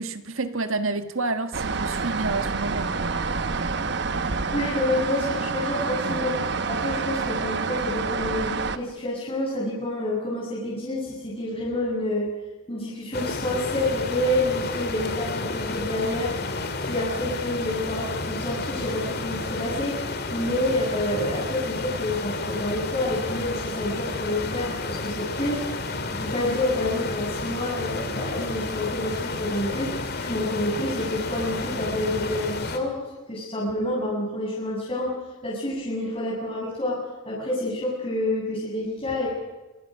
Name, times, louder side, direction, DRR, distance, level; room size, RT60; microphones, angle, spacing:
voice 1, 0.0-3.0, right 3 dB, 75° right, 1.6 m, -29 dB
sound 1, 1.5-8.8, right 4 dB, 55° right, 1.1 m, -28 dB
voice 2, 4.5-12.3 12.7-16.3 16.8-25.6 26.1-35.1 35.4-37.0 37.3-39.3, left 1 dB, 25° left, 7.5 m, -28 dB
sound 2, 13.1-32.8, left 3 dB, 50° left, 2.3 m, -31 dB
26.5 x 26.0 x 6.5 m
head